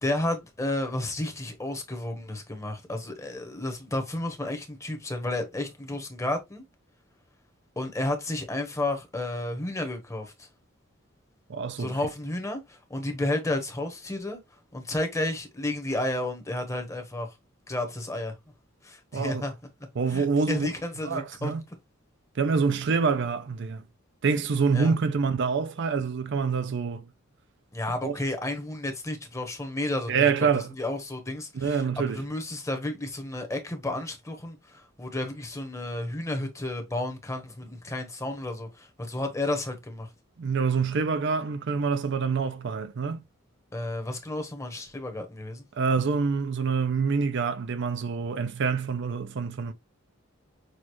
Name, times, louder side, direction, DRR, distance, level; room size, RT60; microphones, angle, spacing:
voice 1, 0.0-6.6 7.8-10.5 11.8-14.4 14.7-17.3 17.7-18.3 18.8-19.5 20.1-21.5 24.7-25.0 27.7-30.3 30.8-40.1 43.7-45.6, left 1 dB, 15° left, 1.0 m, -32 dB
voice 2, 11.5-12.0 19.1-19.4 20.0-20.7 21.0-21.6 22.4-23.8 24.2-27.1 28.0-28.2 30.1-30.7 31.5-32.2 40.4-43.2 45.7-49.7, right 5 dB, 60° right, 0.5 m, -26 dB
6.3 x 2.4 x 3.0 m
head